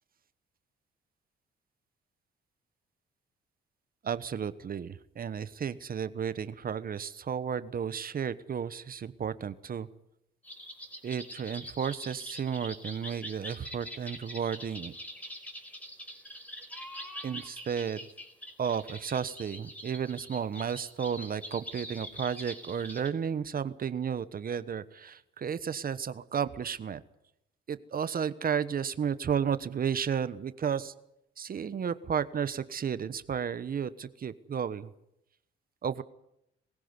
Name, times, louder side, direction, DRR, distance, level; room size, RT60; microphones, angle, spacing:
voice 1, 4.0-9.9 11.0-14.9 17.2-18.1 18.6-27.0 27.7-30.9 31.4-34.9 35.8-36.0, right 7 dB, 45° right, 14 dB, 1.2 m, -33 dB
sound 1, 10.4-23.1, equal, 5° left, 4.7 m, -44 dB
22.5 x 16.0 x 9.8 m, 0.80 s
cardioid pair, 90°, 20 cm